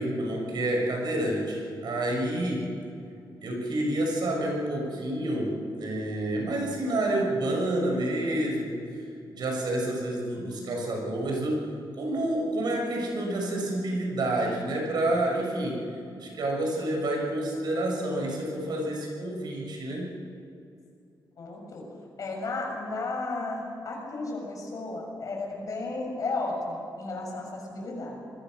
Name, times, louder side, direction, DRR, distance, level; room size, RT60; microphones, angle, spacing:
voice 1, 0.0-2.7 3.4-8.8 9.3-11.7 12.0-15.9 16.2-20.1, right 1 dB, 65° right, 0 dB, 6.7 m, -29 dB
voice 2, 21.4-21.9 22.2-28.2, left 3 dB, 50° left, 0 dB, 6.7 m, -33 dB
27.5 x 21.0 x 6.5 m, 2.5 s
wide cardioid pair, 165°, 8 cm